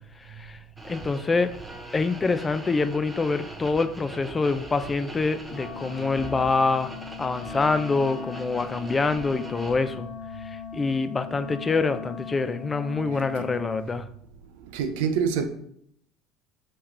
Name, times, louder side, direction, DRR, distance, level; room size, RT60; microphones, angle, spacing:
voice 1, 0.2-0.6 0.8-1.5 1.9-6.9 7.2-10.1 10.4-14.1, left 4 dB, 25° left, 0.3 m, -26 dB
sound 1, 0.8-9.8, right 2 dB, 10° right, 0.6 m, -41 dB
Wind instrument woodwind instrument, 5.5-13.9, left 7 dB, 75° left, 0.6 m, -39 dB
voice 2, 13.1-13.5 14.6-15.5, right 7 dB, 80° right, 0.4 m, -27 dB
3.1 x 3.1 x 3.7 m
supercardioid pair, 90°, 0 cm